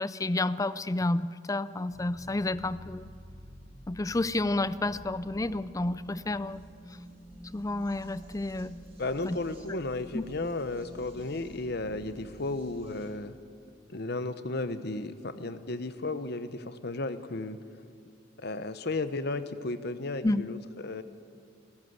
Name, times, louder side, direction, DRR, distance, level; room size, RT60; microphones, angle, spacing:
voice 1, 0.0-3.1 3.9-6.6 7.5-8.8 9.2-9.4 9.7-9.8 10.1-10.2 20.2-20.4, left 2 dB, 15° left, 16 dB, 0.4 m, -30 dB
sound 1, 1.9-13.1, equal, 35° right, 5.6 m, -49 dB
voice 2, 9.0-13.3 13.9-17.6 18.4-21.0, left 2 dB, 55° left, 11 dB, 1.0 m, -34 dB
30.0 x 13.5 x 8.1 m, 2.5 s
head